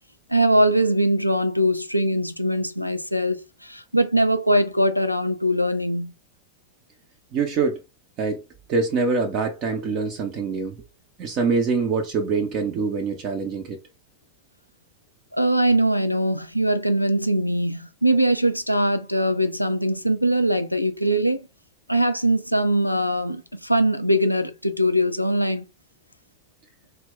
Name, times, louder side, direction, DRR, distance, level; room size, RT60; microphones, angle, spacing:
voice 1, 0.3-6.1 15.3-21.5 21.9-25.6, right 1 dB, 90° left, 0.3 m, -21 dB
voice 2, 7.3-7.8 8.2-8.4 8.7-10.8 11.2-13.8, right 4 dB, 40° right, 0.5 m, -24 dB
2.1 x 2.1 x 3.7 m
figure-of-eight pair, 90°, 0 cm